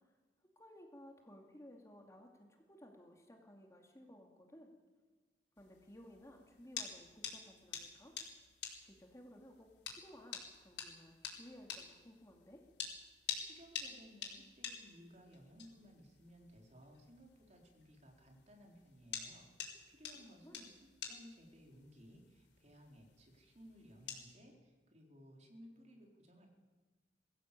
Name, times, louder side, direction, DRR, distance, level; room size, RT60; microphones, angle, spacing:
voice 1, 0.6-4.7 5.6-8.1 8.8-12.6 20.3-20.6, equal, 20° left, 2 dB, 2.5 m, -58 dB
sound 1, 5.6-24.3, left 7 dB, 85° left, 4.8 m, -49 dB
voice 2, 13.4-20.7 21.1-26.5, equal, 40° right, 1 dB, 4.2 m, -59 dB
22.5 x 15.5 x 8.5 m, 1.3 s
head